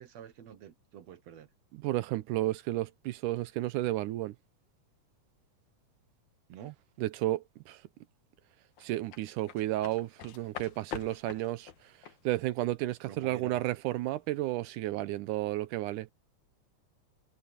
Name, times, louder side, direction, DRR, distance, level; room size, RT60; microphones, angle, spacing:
voice 1, 0.0-1.5 6.5-6.8 13.1-13.6, right 10 dB, 65° right, 2.2 m, -47 dB
voice 2, 1.7-4.3 7.0-7.8 8.8-11.9 12.2-16.1, right 16 dB, 85° right, 2.2 m, -32 dB
sound 1, 8.8-14.0 14.3-14.5, left 9 dB, 70° left, 2.8 m, -45 dB
omnidirectional pair, 3.6 m